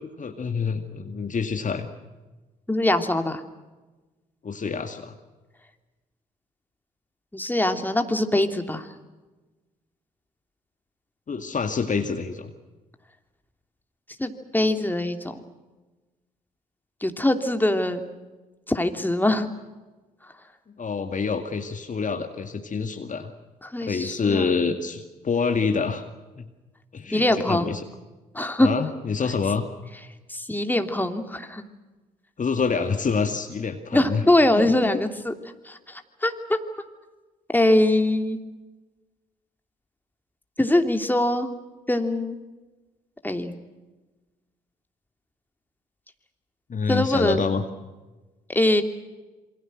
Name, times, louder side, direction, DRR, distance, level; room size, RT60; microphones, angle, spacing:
voice 1, 0.2-1.9 4.4-5.1 11.3-12.5 20.8-23.3 23.8-26.0 26.4-26.5 26.9-27.8 28.6-29.7 32.4-34.2 34.5-34.9 46.7-47.6, left 5 dB, 40° left, 7 dB, 2.2 m, -27 dB
voice 2, 2.7-3.4 7.3-8.9 14.2-15.4 17.0-18.0 18.7-19.5 23.6-24.5 27.1-27.7 28.3-28.7 30.3-31.6 33.9-35.3 35.6-36.6 37.5-38.4 40.6-41.5 41.9-42.4 43.2-43.6 46.9-47.5 48.5-48.8, left 1 dB, 10° left, 6 dB, 2.9 m, -23 dB
27.5 x 24.0 x 6.3 m, 1.2 s
hypercardioid pair, 45°, 19 cm